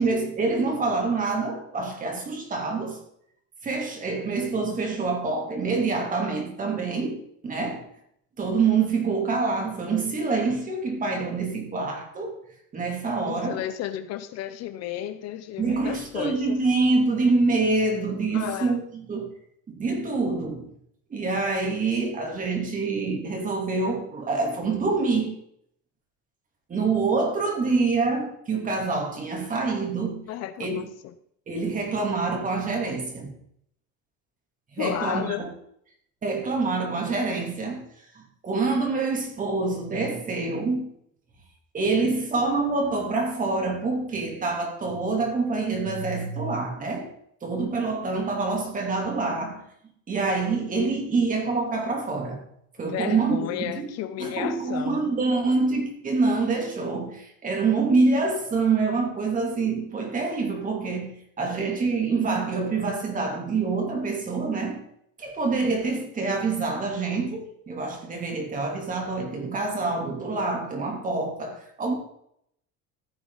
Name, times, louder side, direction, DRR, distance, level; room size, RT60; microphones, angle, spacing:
voice 1, 0.0-3.0 3.6-7.8 8.4-12.4 12.7-13.6 15.6-19.3 19.7-20.6 21.1-25.4 26.7-30.2 30.6-30.8 31.5-33.3 34.7-35.5 36.2-37.9 38.1-40.9 41.7-47.1 47.4-49.6 50.1-52.4 52.8-53.9 54.2-64.8 65.2-71.9, right 3 dB, 25° right, 2.8 m, -26 dB
voice 2, 13.3-16.6 18.3-18.8 30.3-31.1 34.8-35.5 52.9-55.0, left 12 dB, 50° left, 0.8 m, -33 dB
15.5 x 8.5 x 4.0 m
cardioid pair, 160°, 32 cm